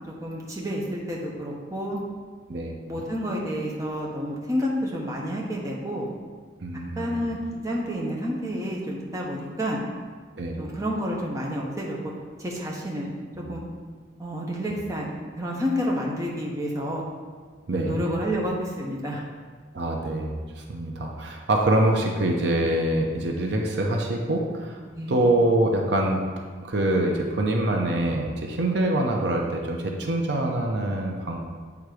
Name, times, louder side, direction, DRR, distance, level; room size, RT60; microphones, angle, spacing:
voice 1, 0.1-2.0 2.9-6.1 7.0-9.8 10.6-12.1 12.4-13.1 13.5-13.6 14.2-15.1 15.3-17.0 17.7-19.2 24.9-25.2, equal, 15° right, -3 dB, 0.9 m, -29 dB
voice 2, 6.6-7.1 10.4-10.6 13.4-13.5 17.7-18.0 19.7-24.8 25.1-26.2 26.6-31.4, right 1 dB, 65° right, 1 dB, 0.7 m, -25 dB
8.0 x 3.6 x 4.9 m, 1.5 s
head